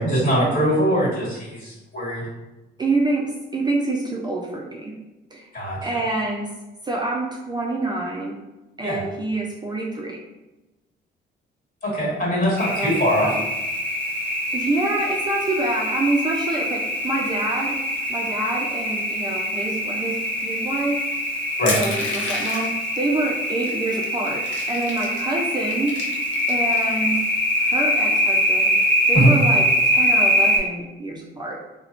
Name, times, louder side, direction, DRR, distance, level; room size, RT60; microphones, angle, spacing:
voice 1, 0.0-2.2 5.5-5.8 8.8-9.0 11.8-13.3 21.6-21.7 29.1-29.3, equal, 45° left, -5 dB, 1.4 m, -21 dB
voice 2, 2.8-5.0 5.3-5.5 5.8-6.5 6.8-8.4 8.8-10.2 12.6-12.9 13.2-13.3 14.5-17.8 18.1-21.1 21.7-27.2 27.6-31.6, right 2 dB, 20° right, -2 dB, 0.3 m, -27 dB
sound 1, 12.6-30.6, equal, 5° left, 1.0 m, -23 dB
Crushing, 21.7-22.9 23.6-23.7 24.0-25.3 25.7-26.8, left 3 dB, 70° left, 0.6 m, -30 dB
2.8 x 2.1 x 2.4 m, 1.1 s
cardioid pair, 90°, 20 cm